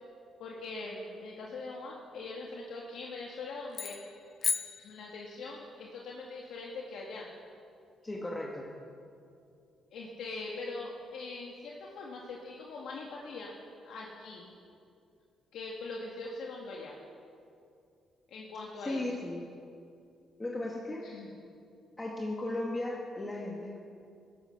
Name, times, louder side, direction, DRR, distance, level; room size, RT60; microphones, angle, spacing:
voice 1, 0.4-4.0 4.8-7.3 9.9-13.5 13.8-14.4 15.5-16.9 18.3-19.0 21.0-21.3, left 3 dB, 75° left, -2 dB, 2.1 m, -42 dB
sound 1, 3.7-5.6, left 5 dB, 50° left, 0.9 m, -36 dB
voice 2, 8.0-8.7 18.8-19.4 20.4-21.1 22.0-23.8, left 1 dB, 20° left, -2 dB, 2.1 m, -36 dB
16.5 x 13.5 x 6.6 m, 2.5 s
cardioid pair, 90°, 0 cm